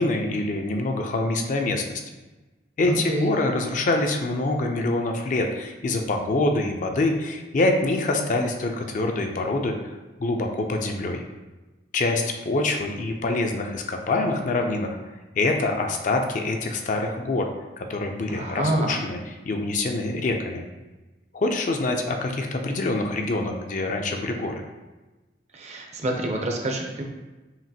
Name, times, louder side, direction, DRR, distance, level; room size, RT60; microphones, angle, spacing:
voice 1, 0.0-2.0 2.8-9.8 10.2-11.2 11.9-15.0 15.4-17.5 17.8-20.6 21.3-24.6, left 2 dB, 45° left, 3 dB, 0.4 m, -25 dB
voice 2, 2.8-3.3 18.3-19.0 25.5-27.0, right 1 dB, 40° right, 1 dB, 0.6 m, -27 dB
5.8 x 2.5 x 2.7 m, 1.1 s
head